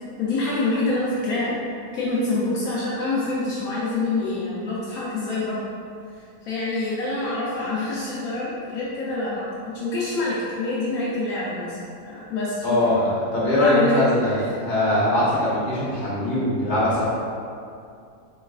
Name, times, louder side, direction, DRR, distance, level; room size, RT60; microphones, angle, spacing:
voice 1, 0.2-1.6 1.9-5.6 6.4-11.8 12.0-13.0 13.4-14.3, left 2 dB, 70° left, -7 dB, 1.0 m, -26 dB
voice 2, 12.6-17.0, left 1 dB, 35° left, -9 dB, 1.0 m, -22 dB
3.9 x 3.2 x 2.3 m, 2.4 s
omnidirectional pair, 1.6 m